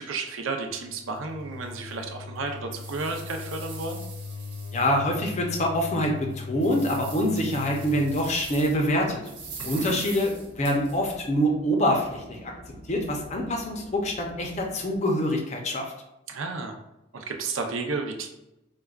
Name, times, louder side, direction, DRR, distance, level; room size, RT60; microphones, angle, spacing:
voice 1, 0.0-4.0 9.6-10.0 16.3-16.7 17.1-18.3, right 3 dB, 85° right, 4 dB, 0.5 m, -32 dB
sound 1, 0.7-8.4, left 4 dB, 85° left, 0.9 m, -39 dB
sound 2, 1.1-1.2 1.7-1.8 2.3-5.2 5.6-5.7 6.2-8.9 9.2-11.2, right 5 dB, 65° right, 0.9 m, -43 dB
voice 2, 4.7-9.2 9.6-12.5 12.9-15.9, equal, 35° left, 1 dB, 0.5 m, -25 dB
sound 3, 7.8-15.0, equal, 25° right, 0.6 m, -48 dB
4.7 x 2.2 x 2.3 m, 0.91 s
head